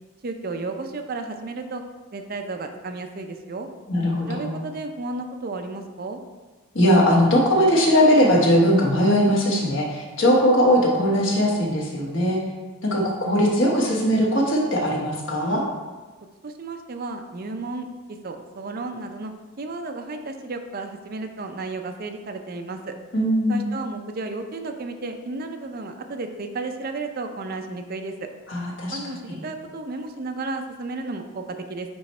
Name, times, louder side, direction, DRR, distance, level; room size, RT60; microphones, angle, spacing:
voice 1, 0.2-1.8 2.1-3.7 4.3-6.2 16.4-19.3 19.6-22.9 23.5-28.3 28.9-31.9, right 3 dB, 45° right, 6 dB, 0.5 m, -33 dB
voice 2, 3.9-4.6 6.7-12.4 12.8-15.6 23.1-23.6 28.5-29.0 29.3-29.4, equal, 60° left, -2 dB, 1.3 m, -20 dB
8.9 x 3.1 x 4.3 m, 1.3 s
head